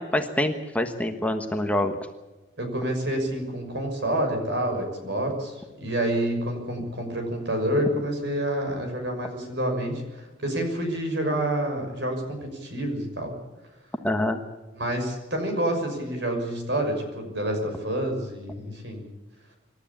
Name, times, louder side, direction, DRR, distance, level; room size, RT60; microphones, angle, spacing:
voice 1, 0.0-1.9 14.0-14.4, left 1 dB, 5° left, 5 dB, 1.2 m, -25 dB
voice 2, 2.6-13.3 14.7-19.0, right 1 dB, 60° right, 4 dB, 6.3 m, -28 dB
26.5 x 13.0 x 8.6 m, 1.1 s
head